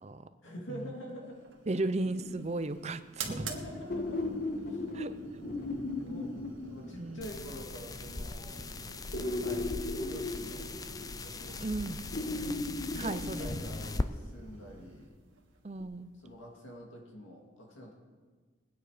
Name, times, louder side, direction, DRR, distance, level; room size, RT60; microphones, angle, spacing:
voice 1, 0.4-1.4 1.7-1.8 3.3-4.2 4.5-4.8 6.0-6.3 6.7-8.6 9.4-10.9 11.2-11.7 12.2-12.6 13.0-15.2 16.2-17.9, equal, 80° left, 0 dB, 2.4 m, -46 dB
sound 1, 1.3-16.6, right 3 dB, 80° right, 1.7 m, -48 dB
voice 2, 1.7-3.3 4.9-5.2 7.0-7.3 11.6-12.0 12.9-13.5 15.6-16.1, right 2 dB, 35° right, 12 dB, 0.5 m, -35 dB
sound 2, 2.0-2.8 3.9-7.5 9.1-11.4 12.1-14.1 15.8-15.9, left 2 dB, 50° left, 1.2 m, -37 dB
sound 3, 7.2-14.1, left 3 dB, 20° left, 0.4 m, -39 dB
20.5 x 9.4 x 5.0 m, 1.5 s
head